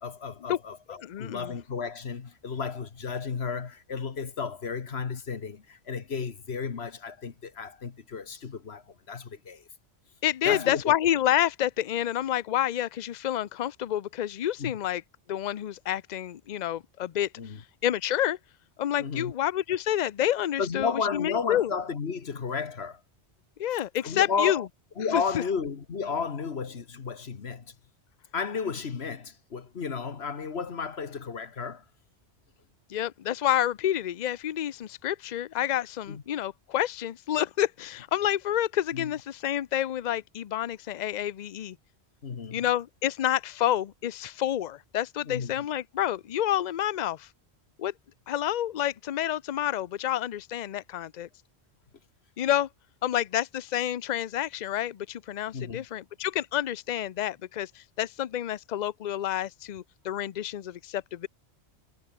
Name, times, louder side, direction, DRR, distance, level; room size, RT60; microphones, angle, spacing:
voice 1, 0.0-9.6 10.4-11.0 14.6-14.7 17.4-17.6 19.0-19.3 20.6-23.0 24.0-24.6 25.0-27.7 28.3-31.8 36.1-36.2 38.9-39.1 42.2-42.6 45.3-45.6 55.5-55.8, left 5 dB, 70° left, 1.7 m, -33 dB
voice 2, 1.0-1.5 10.2-15.0 15.3-17.3 17.8-18.4 18.8-21.7 23.6-24.7 25.1-25.4 32.9-41.8 42.5-47.3 47.8-47.9 48.3-51.3 52.4-52.7 53.0-61.3, left 12 dB, 50° left, 0.6 m, -29 dB
omnidirectional pair, 1.1 m